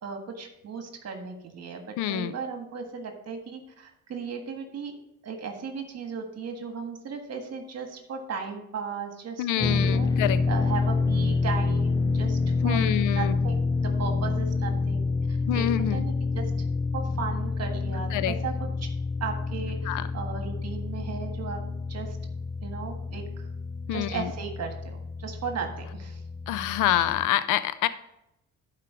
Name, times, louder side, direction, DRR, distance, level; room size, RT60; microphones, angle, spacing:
voice 1, 0.0-4.9 5.2-10.1 10.5-15.7 15.9-16.7 16.9-18.9 19.2-21.6 21.9-22.2 22.6-23.5 23.9-26.2 26.9-27.0, right 5 dB, 55° right, 4 dB, 1.6 m, -36 dB
voice 2, 2.0-2.3 9.4-10.4 12.6-13.4 15.5-16.0 18.1-18.4 19.9-20.1 23.9-24.3 26.5-27.9, left 12 dB, 85° left, 15 dB, 0.5 m, -26 dB
sound 1, 9.6-27.3, left 4 dB, 15° left, 0.4 m, -28 dB
11.5 x 4.9 x 4.8 m, 0.85 s
cardioid pair, 90°, 30 cm